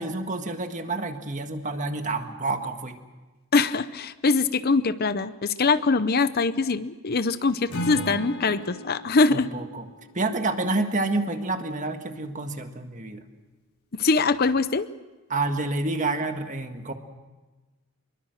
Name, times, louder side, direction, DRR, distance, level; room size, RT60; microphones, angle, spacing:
voice 1, 0.0-3.0 7.7-8.2 9.3-9.9 10.1-13.3 15.3-16.9, right 2 dB, 35° right, 6 dB, 1.7 m, -29 dB
voice 2, 3.5-9.5 13.9-14.9, left 4 dB, 45° left, 13 dB, 0.7 m, -23 dB
Acoustic guitar / Strum, 7.7-10.9, left 1 dB, 85° left, 4.6 m, -37 dB
26.0 x 22.5 x 6.5 m, 1.2 s
head